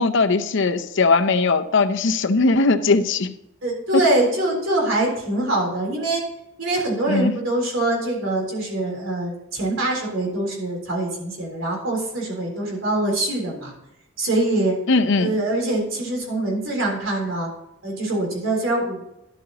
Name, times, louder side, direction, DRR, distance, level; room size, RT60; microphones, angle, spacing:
voice 1, 0.0-3.3 7.1-7.3 14.9-15.3, left 3 dB, 65° left, 8 dB, 0.7 m, -19 dB
voice 2, 3.6-6.2 6.6-13.7 14.2-14.7 15.2-17.5 17.8-19.0, right 2 dB, 80° right, -2 dB, 3.6 m, -24 dB
11.5 x 7.9 x 2.9 m, 0.86 s
head